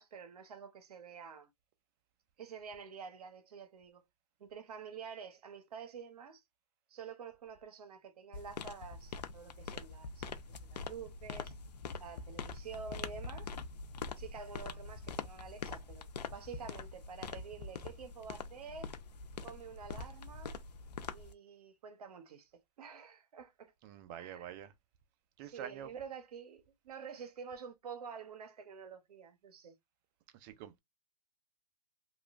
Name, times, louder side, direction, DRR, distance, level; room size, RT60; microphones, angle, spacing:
voice 1, 0.0-1.5 2.4-4.0 4.4-6.4 6.9-11.6 12.0-13.5 14.2-18.9 19.4-20.6 21.1-23.7 24.2-24.5 25.4-29.7, right 6 dB, 70° right, 0.8 m, -49 dB
sound 1, 8.3-21.3, left 5 dB, 85° left, 0.5 m, -44 dB
voice 2, 23.8-24.7 25.4-25.9 30.3-30.8, right 10 dB, 30° right, 0.4 m, -46 dB
2.9 x 2.3 x 2.4 m
hypercardioid pair, 135°, 20 cm